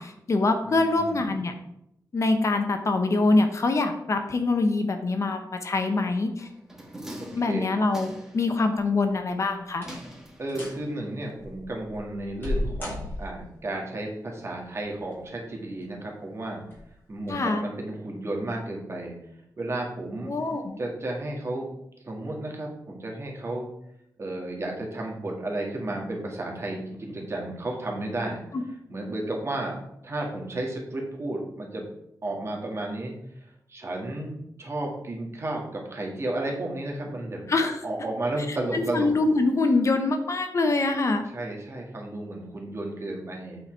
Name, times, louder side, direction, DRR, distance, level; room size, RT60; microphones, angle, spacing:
voice 1, 0.0-1.5 2.1-6.5 7.2-9.9 17.3-17.6 20.3-20.8 28.5-28.6 37.5-37.8 38.5-41.2, left 3 dB, 45° left, 6 dB, 0.8 m, -24 dB
voice 2, 0.6-1.4 7.5-7.7 10.4-16.6 17.1-19.1 19.6-20.3 20.8-21.7 22.0-23.7 24.2-28.4 28.9-29.7 30.0-31.8 32.2-33.1 33.7-37.5 37.8-39.2 41.3-43.6, right 2 dB, 40° right, 0 dB, 1.9 m, -33 dB
sound 1, 6.4-8.5 9.8-11.3 11.6-11.7, right 1 dB, 5° right, 1.2 m, -43 dB
sound 2, 8.8-9.2 9.7-10.2 10.5-10.8 11.4-13.6 14.8-15.4 15.8-15.9 16.6-16.9 17.2-17.3, left 1 dB, 30° left, 3.2 m, -34 dB
8.5 x 4.3 x 4.5 m, 0.79 s
wide cardioid pair, 130°, 7 cm